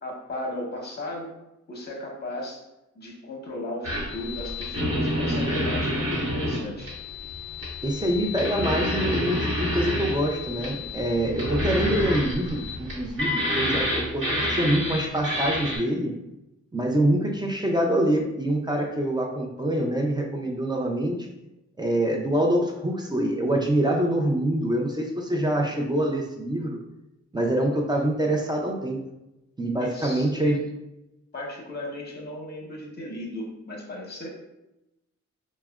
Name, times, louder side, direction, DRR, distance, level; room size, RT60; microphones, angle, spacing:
voice 1, 0.0-1.3 1.7-2.6 2.9-6.9 29.8-30.6 31.3-34.3, left 1 dB, 35° left, -1 dB, 0.8 m, -36 dB
sound 1, 3.8-15.8, left 1 dB, 45° right, 1.1 m, -28 dB
voice 2, 7.8-16.1 16.7-21.2 21.8-26.8 27.3-29.0 29.6-30.6, right 1 dB, 15° right, 0 dB, 0.3 m, -25 dB
4.6 x 2.1 x 2.2 m, 0.92 s
wide cardioid pair, 150°, 30 cm